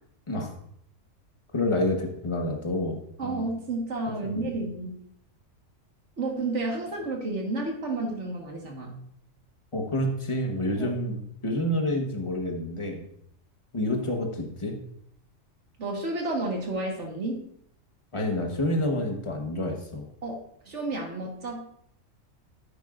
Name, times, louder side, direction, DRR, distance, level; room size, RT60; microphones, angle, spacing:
voice 1, 1.5-3.4 4.1-4.5 9.7-13.0 13.7-14.8 18.1-20.1, left 1 dB, 25° left, 2 dB, 1.2 m, -28 dB
voice 2, 3.2-5.0 6.2-8.9 10.8-10.9 15.8-17.5 20.2-21.6, right 2 dB, 60° right, 0 dB, 1.8 m, -31 dB
9.9 x 8.8 x 2.5 m, 0.69 s
omnidirectional pair, 1.4 m